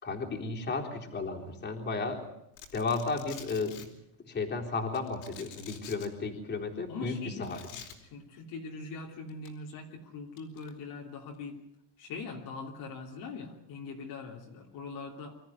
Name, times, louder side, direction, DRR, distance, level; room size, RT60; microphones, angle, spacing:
voice 1, 0.0-2.3 2.7-3.9 4.2-7.6, left 4 dB, 20° left, 0 dB, 3.9 m, -33 dB
Domestic sounds home sounds, 2.6-3.9 4.9-6.1 7.4-7.9 9.3-9.5 10.4-10.7, left 8 dB, 65° left, 4.5 m, -47 dB
voice 2, 6.9-7.8 8.1-11.6 12.0-15.4, left 4 dB, 50° left, 0 dB, 3.2 m, -42 dB
25.5 x 14.0 x 9.6 m, 0.81 s
supercardioid pair, 140°, 48 cm